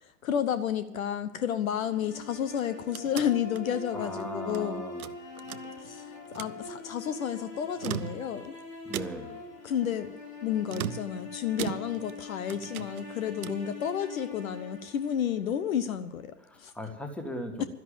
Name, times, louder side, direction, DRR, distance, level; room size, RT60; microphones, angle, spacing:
voice 1, 0.0-4.8 5.8-8.5 8.9-9.0 9.6-10.1 10.4-16.7 17.6-17.7, left 9 dB, 55° left, 14 dB, 1.0 m, -31 dB
sound 1, 1.8-15.9, left 3 dB, 80° left, 4.6 m, -43 dB
sound 2, 2.5-4.6 5.0-6.0 6.3-6.6 7.6-8.5 8.9-9.4 10.7-12.2 12.5-13.7, right 10 dB, 65° right, 0.7 m, -38 dB
voice 2, 3.9-5.1 8.9-9.4 16.4-17.6, left 1 dB, 5° left, 5 dB, 1.7 m, -38 dB
12.5 x 11.0 x 8.7 m, 0.89 s
figure-of-eight pair, 105°, 48 cm